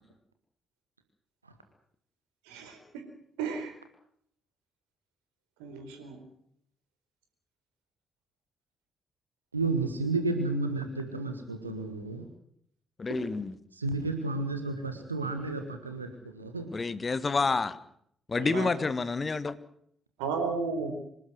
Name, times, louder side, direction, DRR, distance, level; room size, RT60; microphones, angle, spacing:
voice 1, 2.5-2.8 3.4-3.7 5.6-6.2 13.1-13.2 18.4-18.7 20.2-20.9, right 5 dB, 70° right, 5 dB, 4.3 m, -33 dB
voice 2, 9.5-12.3 13.7-16.7, right 3 dB, 85° right, 6 dB, 1.6 m, -32 dB
voice 3, 13.0-13.6 16.7-17.8 18.3-19.6, left 4 dB, 30° left, 15 dB, 1.5 m, -29 dB
25.5 x 13.0 x 9.6 m, 0.68 s
figure-of-eight pair, 40°, 0 cm